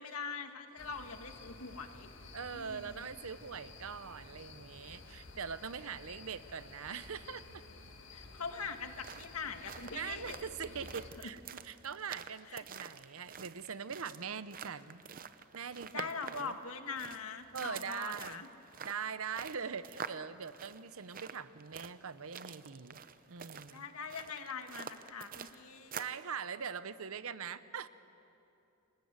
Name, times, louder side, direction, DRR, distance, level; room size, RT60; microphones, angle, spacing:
voice 1, 0.0-2.1 2.5-3.1 8.1-10.4 11.2-11.3 12.5-12.6 15.9-18.5 23.7-26.0, left 5 dB, 75° left, 6 dB, 1.7 m, -43 dB
sound 1, 0.8-11.1, left 3 dB, 55° left, 1.9 m, -53 dB
voice 2, 2.3-7.6 9.9-15.0 15.5-16.6 17.5-18.4 18.8-23.0 23.3-23.8 26.0-27.9, right 6 dB, 70° right, 14 dB, 0.8 m, -42 dB
sound 2, 8.8-26.2, right 6 dB, 40° right, 0.7 m, -48 dB
27.5 x 20.0 x 8.1 m, 2.9 s
head